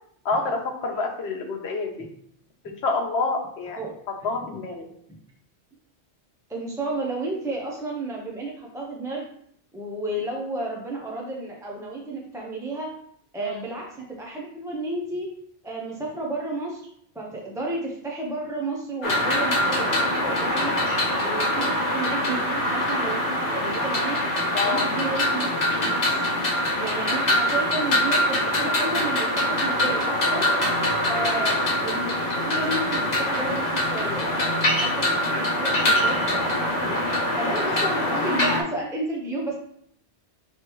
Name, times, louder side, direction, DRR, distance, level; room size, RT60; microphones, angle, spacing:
voice 1, 0.2-2.0 2.6-3.8 4.2-4.9 13.4-13.6 21.4-21.7 24.5-24.9 31.1-31.3, left 3 dB, 70° left, 2 dB, 1.1 m, -28 dB
voice 2, 6.5-9.3 9.7-12.9 13.3-15.3 15.6-16.9 17.1-20.7 21.2-24.2 24.6-26.2 26.7-30.5 31.1-32.1 32.4-37.0 37.4-39.5, right 2 dB, 5° right, -2 dB, 0.4 m, -32 dB
sound 1, 19.0-38.6, left 1 dB, 40° left, 0.9 m, -24 dB
4.5 x 3.3 x 3.0 m, 0.68 s
omnidirectional pair, 1.2 m